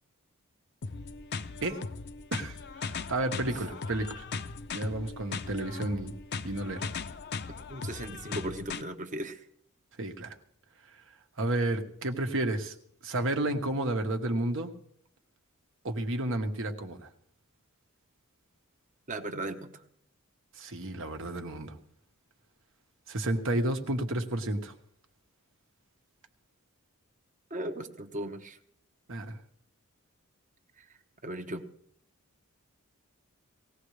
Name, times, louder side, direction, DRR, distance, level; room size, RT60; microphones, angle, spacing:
sound 1, 0.8-8.8, left 4 dB, 50° left, 0.7 m, -38 dB
voice 1, 2.3-4.3 4.7-6.1 6.4-6.8 10.0-10.3 11.4-12.7 13.0-14.7 15.8-17.1 20.6-21.8 23.1-24.7 29.1-29.4, right 1 dB, 60° right, 6 dB, 1.4 m, -31 dB
voice 2, 7.7-9.5 19.1-19.7 27.5-28.6 30.8-30.9 31.2-31.6, right 1 dB, 35° right, 7 dB, 1.2 m, -37 dB
19.5 x 16.0 x 3.3 m, 0.66 s
head